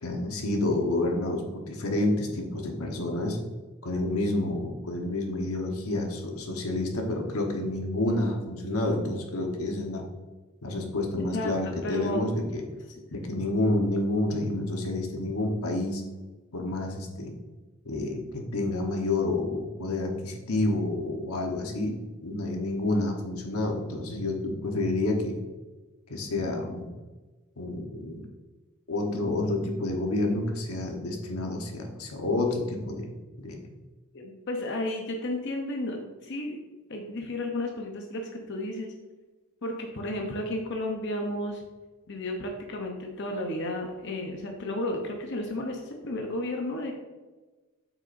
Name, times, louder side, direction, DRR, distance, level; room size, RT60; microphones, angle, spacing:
voice 1, 0.0-3.4 3.8-10.0 10.6-12.6 13.1-16.0 16.5-17.3 17.8-25.4 26.1-26.9 27.6-28.2 28.9-33.1 33.4-33.7, left 2 dB, 90° left, 2 dB, 1.2 m, -29 dB
voice 2, 11.8-12.2 34.1-36.6 36.9-38.9 39.6-41.6 42.1-46.9, left 1 dB, 55° left, 1 dB, 0.8 m, -33 dB
7.7 x 6.1 x 2.6 m, 1.2 s
head